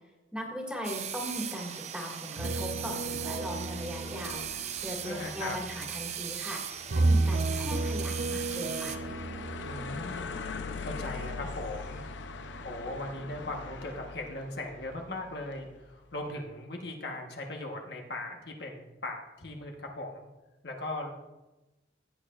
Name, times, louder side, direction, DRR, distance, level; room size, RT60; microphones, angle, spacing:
voice 1, 0.3-9.1, equal, 5° right, -2 dB, 1.9 m, -39 dB
sound 1, 0.8-9.0, right 9 dB, 35° right, 0.5 m, -39 dB
sound 2, 2.4-6.5 6.9-12.4 12.8-13.3, right 2 dB, 80° right, 0.8 m, -33 dB
sound 3, 3.7-15.9, left 4 dB, 75° left, 0.6 m, -43 dB
voice 2, 5.0-5.6 9.6-10.4 10.8-12.0 12.6-20.3 20.6-21.1, left 2 dB, 60° left, 1 dB, 1.2 m, -39 dB
15.0 x 8.8 x 2.4 m, 1.1 s
head